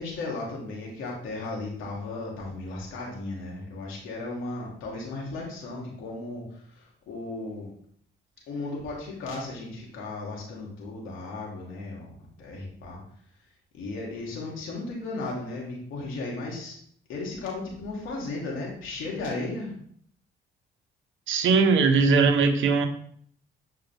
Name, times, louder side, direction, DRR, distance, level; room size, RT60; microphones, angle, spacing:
voice 1, 0.0-7.7 8.5-13.0 13.7-16.8 17.1-19.7, left 2 dB, 90° left, -3 dB, 2.9 m, -35 dB
voice 2, 21.3-22.9, right 4 dB, 75° right, 6 dB, 1.2 m, -20 dB
10.0 x 4.9 x 3.6 m, 0.62 s
cardioid pair, 90°, 20 cm